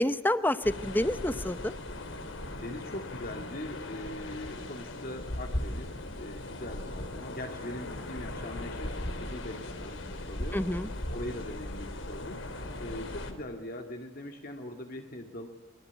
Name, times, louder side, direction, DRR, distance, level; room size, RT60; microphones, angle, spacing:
voice 1, 0.0-1.7 10.5-10.9, left 1 dB, 10° left, 13 dB, 0.9 m, -28 dB
sound 1, 0.6-13.3, left 1 dB, 75° left, 3.6 m, -38 dB
voice 2, 2.6-5.9 6.1-10.6 11.1-12.5 12.8-15.5, left 1 dB, 50° left, 2 dB, 2.3 m, -41 dB
25.5 x 23.0 x 8.3 m, 1.2 s
head